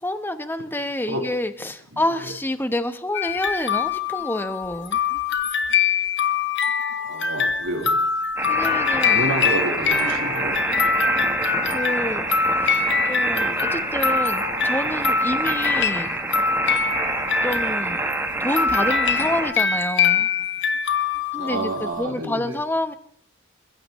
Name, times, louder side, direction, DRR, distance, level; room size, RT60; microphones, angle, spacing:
voice 1, 0.0-5.0 8.5-9.2 11.7-16.4 17.4-18.1 18.4-20.3 21.3-21.7 22.0-22.9, left 1 dB, 10° left, 9 dB, 1.0 m, -28 dB
voice 2, 1.9-2.3 7.1-8.0 8.6-10.6 21.4-22.6, right 1 dB, 80° right, 0 dB, 4.1 m, -29 dB
sound 1, 3.1-18.2 18.6-22.0, left 5 dB, 55° left, 1.4 m, -24 dB
sound 2, 8.4-19.5, right 2 dB, 10° right, 1.2 m, -27 dB
28.5 x 16.0 x 3.1 m, 0.63 s
head